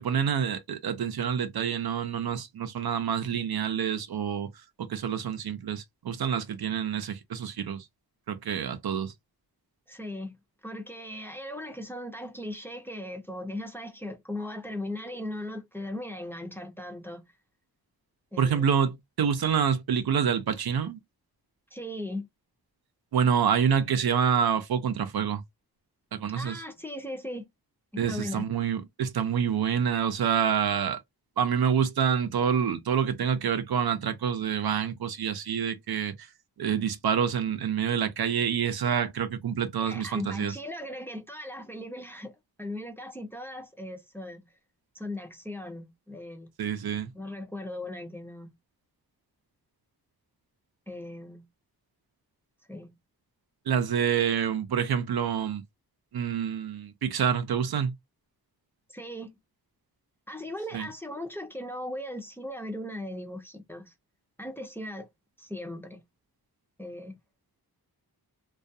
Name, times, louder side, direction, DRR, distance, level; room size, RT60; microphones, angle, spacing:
voice 1, 0.0-4.5 4.8-7.8 8.3-9.1 18.4-21.0 23.1-25.4 26.1-26.6 28.0-31.0 31.4-36.3 36.6-40.5 46.6-47.1 53.7-55.6 56.1-57.9 60.7-60.9, right 7 dB, 75° right, 0.6 m, -27 dB
voice 2, 9.9-10.4 10.6-17.2 18.3-18.6 21.7-22.3 26.4-27.5 27.9-28.5 39.8-44.5 44.9-46.5 47.1-48.5 50.9-51.4 52.7-53.0 58.9-59.4 60.3-63.9 64.4-65.1 65.4-66.0 66.8-67.2, left 1 dB, 5° left, 0.5 m, -38 dB
2.3 x 2.3 x 2.6 m
wide cardioid pair, 90°, 38 cm